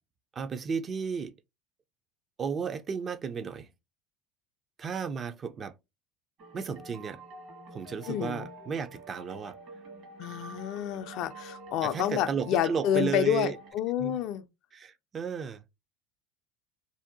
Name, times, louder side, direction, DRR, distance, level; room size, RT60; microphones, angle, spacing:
voice 1, 0.3-1.3 2.4-3.7 4.8-5.7 6.5-7.2 7.7-9.6 11.8-13.6 14.0-14.2 14.7-15.6, right 6 dB, 35° right, 0.3 m, -33 dB
sound 1, 6.4-13.7, right 2 dB, 55° right, 1.1 m, -47 dB
voice 2, 8.1-8.5 10.2-14.5, left 10 dB, 60° left, 0.3 m, -29 dB
2.6 x 2.1 x 2.6 m
hypercardioid pair, 85°, 0 cm